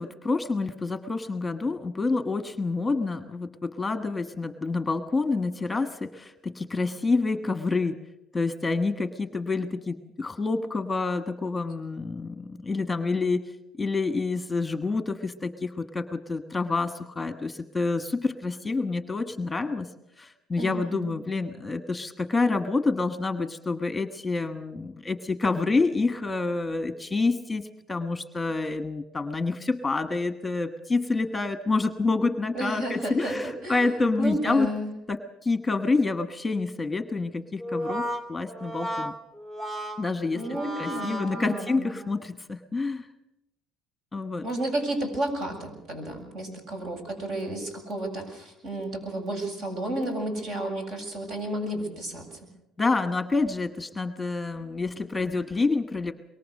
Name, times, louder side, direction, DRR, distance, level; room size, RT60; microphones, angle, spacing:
voice 1, 0.0-8.0 8.3-13.4 13.8-19.9 20.2-34.7 35.1-39.1 40.0-43.1 44.1-44.4 52.8-56.1, left 3 dB, 15° left, 10 dB, 1.3 m, -28 dB
voice 2, 20.6-21.1 32.5-33.8 34.2-34.9 40.3-41.9 44.4-52.5, right 1 dB, 55° right, 5 dB, 7.6 m, -32 dB
Brass instrument, 37.6-42.1, equal, 25° right, 2.6 m, -34 dB
24.0 x 22.5 x 6.6 m, 0.88 s
cardioid pair, 115°, 0 cm